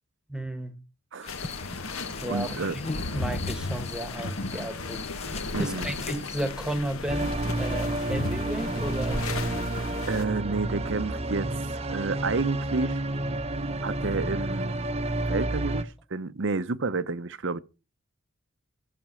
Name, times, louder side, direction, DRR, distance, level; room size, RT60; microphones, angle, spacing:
voice 1, 0.3-0.7 2.2-2.6 3.1-5.1 5.6-9.2, right 1 dB, 5° right, 1.2 m, -33 dB
sound 1, 1.2-6.5, left 4 dB, 30° left, 0.6 m, -40 dB
sound 2, 1.3-10.2, left 2 dB, 75° left, 1.5 m, -35 dB
voice 2, 2.3-2.8 5.5-5.9 10.1-11.5 11.8-13.0 13.8-14.9 15.2-17.6, right 3 dB, 60° right, 0.7 m, -30 dB
sound 3, 7.1-15.8, right 2 dB, 30° right, 0.9 m, -30 dB
14.0 x 5.9 x 7.6 m
head